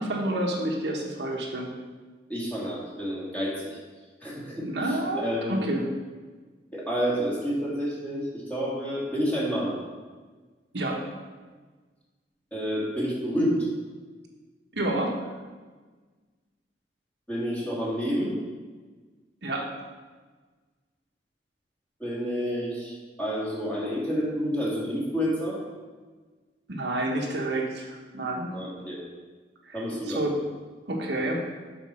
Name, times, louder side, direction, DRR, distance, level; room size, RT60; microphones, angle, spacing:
voice 1, 0.0-1.7 4.6-5.9 10.7-11.0 14.7-15.3 19.4-19.7 26.7-28.5 29.6-30.4 30.9-31.4, right 1 dB, 75° right, -1 dB, 1.3 m, -29 dB
voice 2, 2.3-3.8 4.2-4.7 5.1-5.6 6.7-9.8 12.5-13.7 17.3-18.4 22.0-25.6 28.5-29.0 29.7-30.2, equal, 10° left, -7 dB, 2.4 m, -29 dB
7.5 x 4.9 x 6.2 m, 1.4 s
head